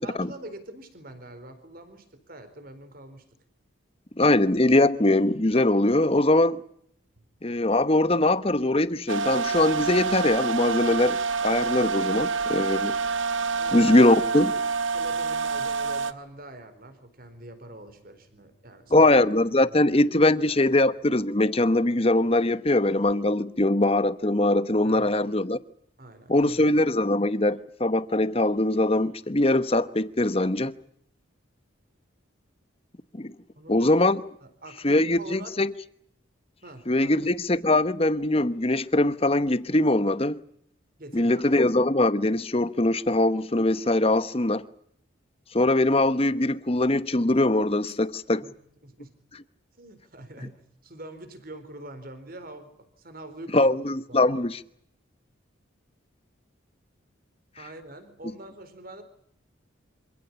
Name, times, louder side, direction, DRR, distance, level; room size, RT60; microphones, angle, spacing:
voice 1, 0.0-3.2 13.6-14.2 14.8-19.1 19.7-19.8 24.8-25.2 26.0-26.6 33.6-34.0 34.4-35.6 36.6-37.3 41.0-41.4 47.9-48.0 48.4-48.5 48.8-49.1 49.8-52.7 53.0-53.7 54.1-54.3 57.6-59.0, right 1 dB, 45° right, 4.3 m, -44 dB
voice 2, 4.2-6.6 7.4-12.9 13.7-14.5 18.9-25.6 26.3-30.7 33.1-33.3 33.7-34.2 34.8-35.7 36.9-40.4 41.1-44.6 45.5-48.4 53.5-54.6, left 2 dB, 30° left, 1.0 m, -22 dB
sound 1, 9.1-16.1, right 4 dB, 75° right, 1.3 m, -27 dB
26.5 x 16.0 x 9.9 m
head